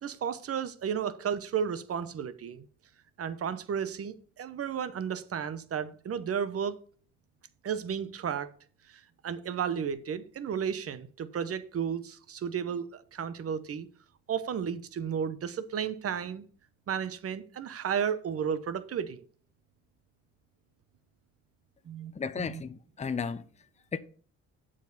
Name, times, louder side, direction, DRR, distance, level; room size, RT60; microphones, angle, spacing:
voice 1, 0.0-2.6 3.2-6.8 7.6-8.5 8.9-13.9 14.3-16.4 16.9-19.2 21.8-22.6, right 7 dB, 50° right, 1.0 m, -33 dB
voice 2, 22.2-23.4 23.9-24.0, left 5 dB, 25° left, 0.7 m, -34 dB
8.8 x 7.6 x 4.1 m
cardioid pair, 90°, 30 cm